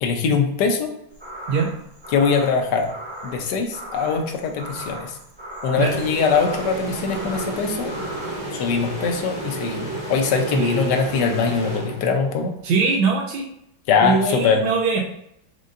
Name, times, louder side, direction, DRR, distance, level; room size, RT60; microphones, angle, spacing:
voice 1, 0.0-0.9 2.1-2.9 3.2-5.1 5.6-8.0 8.5-12.5 13.9-14.6, left 5 dB, 70° left, 4 dB, 1.2 m, -22 dB
sound 1, 1.1-8.5, right 1 dB, 40° right, 0.4 m, -38 dB
sound 2, 5.8-12.4, right 2 dB, 20° left, 1.4 m, -31 dB
voice 2, 10.5-11.0 12.6-13.5 14.0-15.0, right 4 dB, 85° right, 0 dB, 1.4 m, -22 dB
5.2 x 3.6 x 2.5 m, 0.77 s
omnidirectional pair, 2.1 m